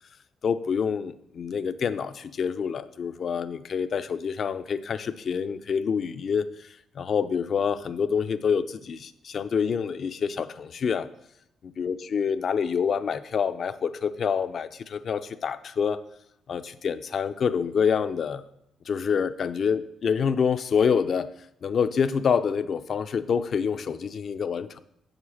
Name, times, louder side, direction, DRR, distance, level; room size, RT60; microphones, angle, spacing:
voice 1, 0.4-11.1 11.6-16.0 16.5-18.4 18.9-21.3 21.6-24.8, left 6 dB, 50° left, 12 dB, 0.6 m, -27 dB
8.0 x 8.0 x 7.1 m, 0.76 s
cardioid pair, 110°, 0 cm